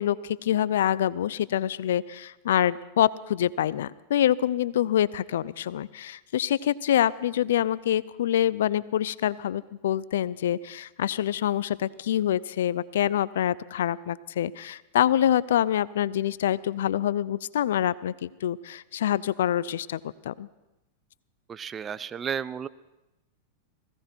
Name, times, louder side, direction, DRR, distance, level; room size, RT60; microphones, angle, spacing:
voice 1, 0.0-20.0 20.2-20.5, left 11 dB, 75° left, 20 dB, 0.5 m, -26 dB
voice 2, 21.5-22.7, right 7 dB, 25° right, 17 dB, 0.6 m, -33 dB
19.5 x 16.5 x 4.5 m, 0.97 s
hypercardioid pair, 105°, 0 cm